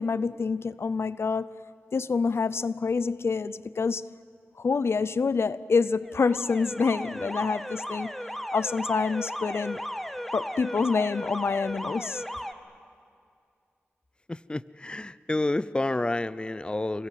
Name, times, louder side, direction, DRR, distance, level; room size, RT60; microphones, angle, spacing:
voice 1, 0.0-1.5 1.9-4.1 4.6-8.1 8.4-9.8 10.3-12.2, left 4 dB, 70° left, 0.6 m, -27 dB
Alarm, 6.0-12.5, equal, 5° left, 1.5 m, -36 dB
voice 2, 14.3-17.1, left 2 dB, 20° left, 0.5 m, -29 dB
27.5 x 24.0 x 7.6 m
cardioid pair, 55°, 4 cm